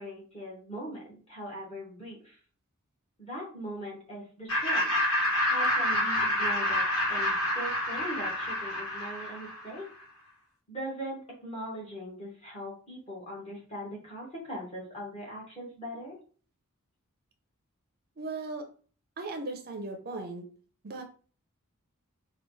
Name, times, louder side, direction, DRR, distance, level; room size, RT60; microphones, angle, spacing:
voice 1, 0.0-2.4 3.2-4.9 5.2-6.8 7.1-9.9 10.7-16.2, equal, 30° left, -3 dB, 1.6 m, -40 dB
Laughter, 4.5-9.8, left 1 dB, 70° left, 1.4 m, -28 dB
voice 2, 18.2-18.6 19.2-20.4 20.8-21.0, right 3 dB, 45° right, 5 dB, 0.6 m, -37 dB
4.8 x 2.4 x 3.1 m, 0.41 s
head